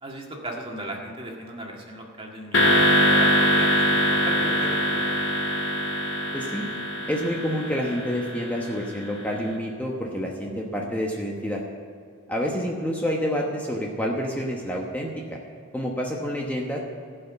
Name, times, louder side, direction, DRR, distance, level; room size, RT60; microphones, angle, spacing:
voice 1, 0.0-5.1, right 1 dB, 25° right, 0 dB, 1.8 m, -37 dB
sound 1, 2.5-8.9, equal, 70° left, 1.6 m, -23 dB
voice 2, 6.3-6.6 7.1-11.6 12.3-15.4 15.7-16.8, equal, 10° left, -2 dB, 1.0 m, -28 dB
16.0 x 5.7 x 7.9 m, 2.4 s
head